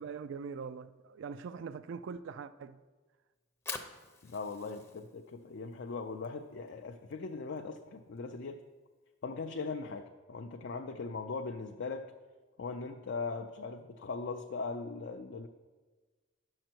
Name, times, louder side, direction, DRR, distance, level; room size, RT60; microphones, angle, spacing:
voice 1, 0.0-2.8, right 5 dB, 65° right, 0.3 m, -42 dB
Fire, 3.4-9.6, left 3 dB, 15° left, 0.6 m, -49 dB
voice 2, 4.2-8.6 9.2-12.1 12.6-15.5, left 4 dB, 60° left, 0.4 m, -40 dB
10.0 x 6.4 x 4.5 m
head